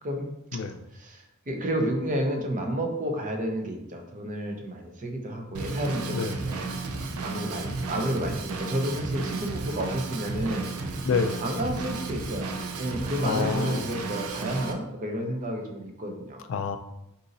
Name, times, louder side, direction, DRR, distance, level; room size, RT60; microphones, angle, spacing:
voice 1, 0.0-0.3 0.9-6.7 7.2-10.7 11.4-12.5 12.8-16.4, right 1 dB, 35° right, 3 dB, 0.6 m, -31 dB
Drum kit / Drum, 5.5-14.7, right 3 dB, 80° right, 0.5 m, -33 dB
voice 2, 11.0-11.4 13.2-13.9 16.5-16.8, left 5 dB, 60° left, 8 dB, 0.3 m, -28 dB
3.8 x 2.7 x 3.9 m, 0.86 s
head